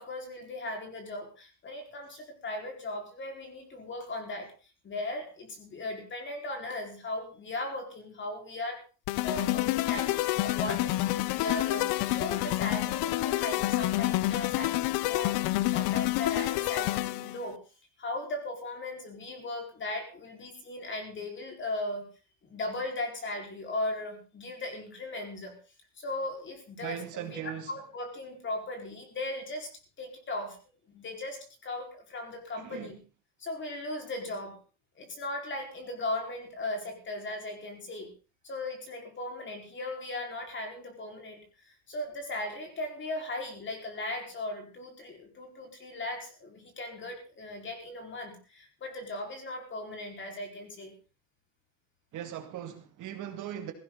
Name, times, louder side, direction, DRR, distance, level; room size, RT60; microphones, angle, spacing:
voice 1, 0.0-4.5 4.8-8.8 9.2-15.4 15.7-17.6 18.0-22.1 22.5-25.5 26.0-27.4 27.7-29.7 30.0-30.6 30.9-32.9 33.4-34.6 35.0-38.1 38.4-51.0, left 2 dB, 30° left, 4 dB, 4.9 m, -37 dB
sound 1, 9.1-17.4, left 17 dB, 70° left, 0.9 m, -28 dB
voice 2, 26.8-27.7 32.6-32.9 52.1-53.7, right 10 dB, 50° right, 5 dB, 2.6 m, -39 dB
17.5 x 15.5 x 4.0 m, 0.34 s
cardioid pair, 140°, 39 cm